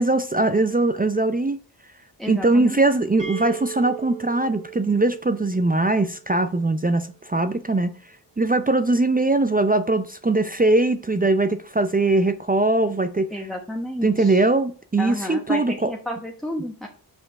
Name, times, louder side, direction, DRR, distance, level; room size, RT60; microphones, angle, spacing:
voice 1, 0.0-1.6 2.3-7.9 8.4-13.3 14.0-15.9, right 2 dB, 20° right, 0.5 m, -21 dB
voice 2, 2.2-2.8 13.3-14.4 15.0-16.9, left 1 dB, ahead, 1.1 m, -31 dB
sound 1, 3.2-6.9, right 9 dB, 75° right, 2.4 m, -39 dB
5.6 x 4.4 x 5.2 m
cardioid pair, 50°, 43 cm